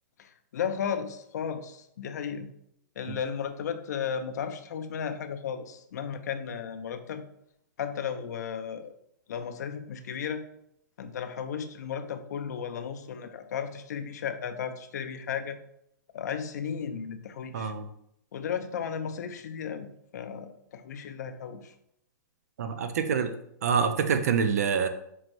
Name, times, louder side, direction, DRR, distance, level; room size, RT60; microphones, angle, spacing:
voice 1, 0.2-2.5 3.0-7.2 7.8-8.9 9.3-10.5 11.0-15.6 16.1-17.7 18.3-19.9 20.1-21.7, left 7 dB, 60° left, 8 dB, 0.4 m, -34 dB
voice 2, 17.5-17.9 22.6-23.3 23.6-24.9, right 6 dB, 55° right, 9 dB, 0.3 m, -26 dB
4.5 x 3.0 x 2.5 m, 0.74 s
hypercardioid pair, 175°, 10 cm